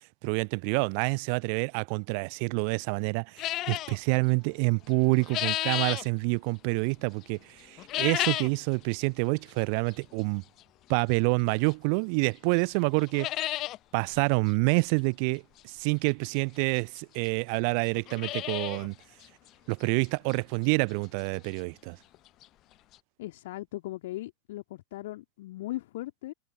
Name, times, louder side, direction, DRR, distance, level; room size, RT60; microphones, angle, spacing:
voice 1, 0.2-10.4 10.9-13.3 13.9-18.9 19.7-22.0, right 39 dB, 45° right, 0.4 m, -27 dB
sound 1, 3.4-4.0 4.9-6.1 7.8-8.6 9.0-9.1 9.9-10.0 11.7-11.8 12.2-12.3 12.6-12.7 13.0-13.8 14.1-14.2 14.4-14.5 16.1-16.2 17.0-17.1 17.3-17.4 17.9-18.9 19.2-19.3 19.8-19.9 20.3-20.4 22.1-22.2 22.4-22.5 22.9-23.0, left 16 dB, 35° left, 0.7 m, -31 dB
voice 2, 23.2-26.3, left 16 dB, 55° left, 2.8 m, -38 dB
figure-of-eight pair, 90°, 0 cm